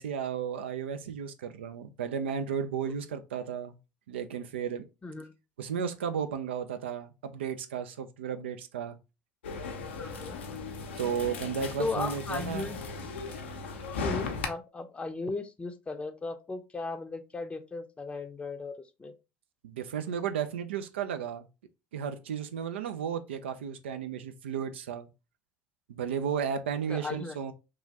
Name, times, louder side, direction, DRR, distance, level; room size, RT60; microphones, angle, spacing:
voice 1, 0.0-3.8 4.1-4.8 5.6-9.0 11.0-12.7 19.6-21.5 21.9-25.1 25.9-27.5, right 7 dB, 85° right, 0.3 m, -34 dB
sound 1, 9.4-14.5, left 4 dB, 85° left, 0.5 m, -37 dB
voice 2, 10.0-10.4 11.8-12.8 14.0-18.7 19.0-19.1 26.9-27.4, left 3 dB, 20° left, 0.5 m, -36 dB
2.9 x 2.3 x 2.7 m
hypercardioid pair, 65°, 6 cm